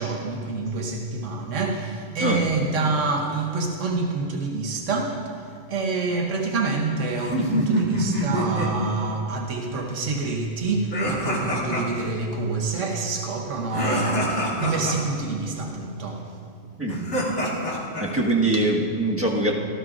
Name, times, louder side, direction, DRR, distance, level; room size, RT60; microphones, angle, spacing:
voice 1, 0.0-16.4 18.5-18.6, right 3 dB, 90° right, 1.3 m, -27 dB
sound 1, 7.1-8.7 10.9-12.1 13.7-14.9 16.8-18.0, equal, 70° left, 2.1 m, -26 dB
voice 2, 18.0-19.5, right 2 dB, 10° right, 1.4 m, -22 dB
17.5 x 13.5 x 2.5 m
omnidirectional pair, 1.2 m